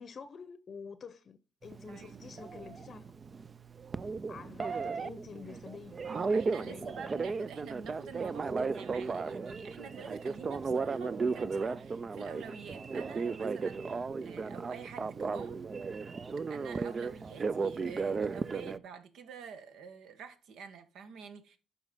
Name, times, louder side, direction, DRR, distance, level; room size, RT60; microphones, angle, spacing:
voice 1, 0.0-3.1 4.3-6.0 6.5-7.0, left 6 dB, 50° left, 0.7 m, -48 dB
Telephone, 1.6-18.8, right 4 dB, 35° right, 0.4 m, -35 dB
voice 2, 1.9-2.2 6.1-15.6 16.5-21.6, right 6 dB, 80° right, 1.2 m, -48 dB
11.5 x 4.0 x 3.6 m
cardioid pair, 90°, 0 cm